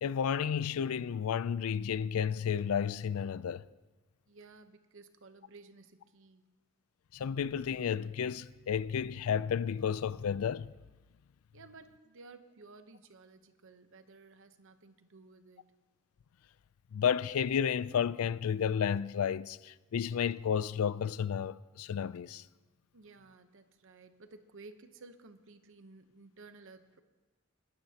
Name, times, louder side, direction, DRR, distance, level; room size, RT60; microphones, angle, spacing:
voice 1, 0.0-3.7 7.1-10.7 16.9-22.4, left 7 dB, 75° left, 0.4 m, -32 dB
voice 2, 4.3-6.4 11.5-15.6 22.9-27.0, right 3 dB, 65° right, 0.9 m, -55 dB
21.0 x 12.5 x 2.9 m
head